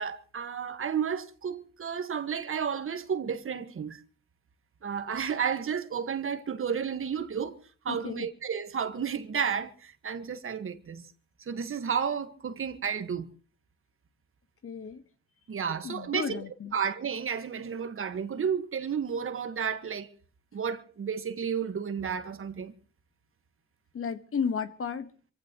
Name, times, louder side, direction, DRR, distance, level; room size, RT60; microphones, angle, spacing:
voice 1, 0.0-4.0 4.8-7.6 7.8-11.1 11.4-13.3 15.5-16.4 16.7-20.1 20.5-22.7, right 7 dB, 45° right, 1.6 m, -32 dB
voice 2, 7.9-8.3 14.6-15.0 15.8-16.8 23.9-25.1, left 6 dB, 45° left, 1.5 m, -33 dB
26.5 x 15.5 x 3.1 m
cardioid pair, 90°, 30 cm